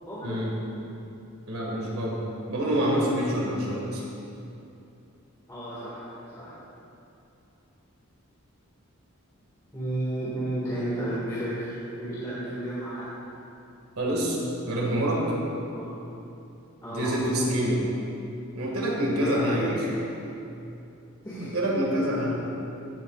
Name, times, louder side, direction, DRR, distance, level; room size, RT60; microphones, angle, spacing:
voice 1, 0.0-0.4 5.5-6.5 9.7-13.1 15.7-15.9 16.8-17.1 19.2-20.0 21.2-21.5, right 1 dB, 15° left, -11 dB, 1.9 m, -32 dB
voice 2, 1.5-2.2 2.5-4.1 14.0-14.4 14.7-15.2 16.9-17.9 18.5-19.8 21.4-22.4, equal, 90° right, -3 dB, 2.0 m, -26 dB
15.0 x 8.3 x 2.4 m, 2.7 s
head